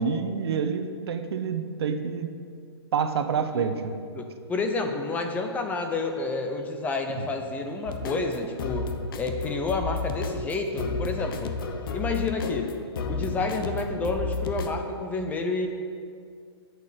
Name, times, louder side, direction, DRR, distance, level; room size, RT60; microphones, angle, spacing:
voice 1, 0.0-2.3 2.9-4.0 7.2-7.3, right 6 dB, 70° right, 8 dB, 1.0 m, -27 dB
voice 2, 4.1-11.6 11.9-12.8 13.1-15.7, left 3 dB, 10° left, 5 dB, 0.7 m, -30 dB
sound 1, 7.9-14.8, left 4 dB, 55° left, 0.9 m, -32 dB
8.4 x 7.8 x 8.8 m, 2.2 s
hypercardioid pair, 155°, 14 cm